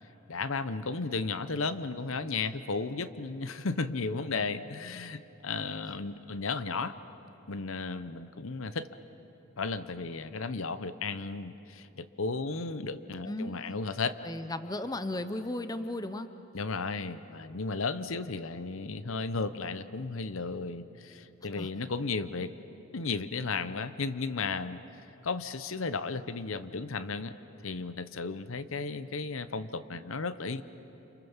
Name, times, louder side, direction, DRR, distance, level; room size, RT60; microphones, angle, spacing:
voice 1, 0.3-6.9 7.5-8.9 9.6-14.2 16.5-22.5 22.9-24.8 25.2-27.4 27.6-30.6, left 4 dB, 75° left, 13 dB, 0.9 m, -34 dB
voice 2, 13.2-13.8 14.2-16.3 21.6-21.7, left 1 dB, 15° left, 10 dB, 0.7 m, -35 dB
29.0 x 28.0 x 7.2 m, 3.0 s
head